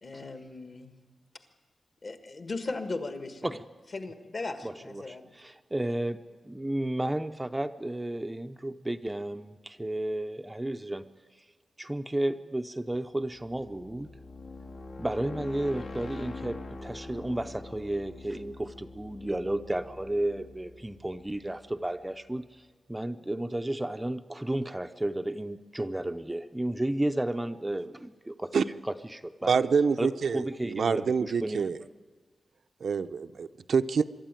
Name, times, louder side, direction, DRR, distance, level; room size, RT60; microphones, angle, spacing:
voice 1, 0.0-0.9 2.0-3.6 3.9-5.3, left 3 dB, 45° left, 7 dB, 1.6 m, -37 dB
voice 2, 4.6-6.2 6.4-11.0 11.8-14.1 15.0-28.6 28.9-29.5 30.0-31.7, right 1 dB, 10° right, 8 dB, 0.5 m, -33 dB
sound 1, 13.3-22.1, left 3 dB, 80° left, 2.1 m, -44 dB
voice 3, 29.5-31.8 32.8-34.0, right 5 dB, 70° right, 9 dB, 0.6 m, -26 dB
23.5 x 12.5 x 9.0 m, 1.4 s
wide cardioid pair, 130°, 0 cm